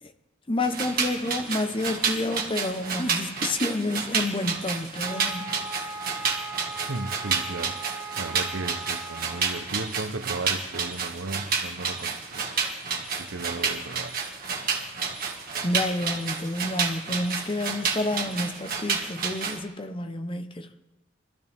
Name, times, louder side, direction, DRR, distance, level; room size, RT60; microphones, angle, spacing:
voice 1, 0.5-5.6 15.6-20.7, left 1 dB, 25° left, 1.0 m, -29 dB
sound 1, 0.6-19.6, right 5 dB, 50° right, 2.0 m, -30 dB
sound 2, 5.0-9.7, right 4 dB, 20° right, 1.8 m, -39 dB
voice 2, 6.7-12.8 13.1-14.2, right 2 dB, 80° right, 1.0 m, -36 dB
24.5 x 14.5 x 3.7 m
head